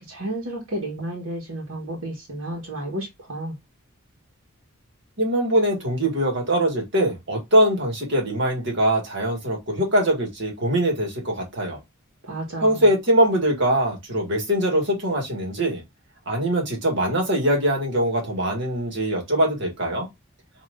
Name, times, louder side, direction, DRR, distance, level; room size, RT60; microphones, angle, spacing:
voice 1, 0.0-3.5 12.2-12.8, right 1 dB, 80° right, 1.5 m, -32 dB
voice 2, 5.2-11.8 12.6-15.8 16.3-20.1, right 1 dB, 55° right, 1.8 m, -22 dB
5.8 x 3.0 x 2.5 m
head